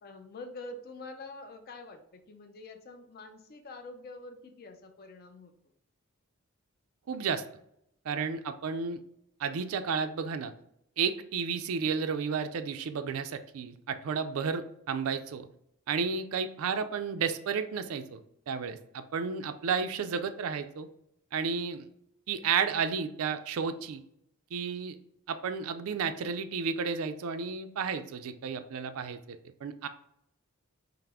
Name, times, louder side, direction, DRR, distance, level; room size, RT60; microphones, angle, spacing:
voice 1, 0.0-5.5, left 2 dB, 45° left, 6 dB, 0.5 m, -46 dB
voice 2, 7.1-7.4 8.1-9.0 9.4-10.5 11.0-15.5 15.9-18.2 18.5-20.9 21.3-21.9 22.3-24.0 24.5-25.0 25.3-29.9, right 6 dB, 70° right, 9 dB, 0.4 m, -32 dB
5.6 x 2.0 x 3.5 m, 0.76 s
head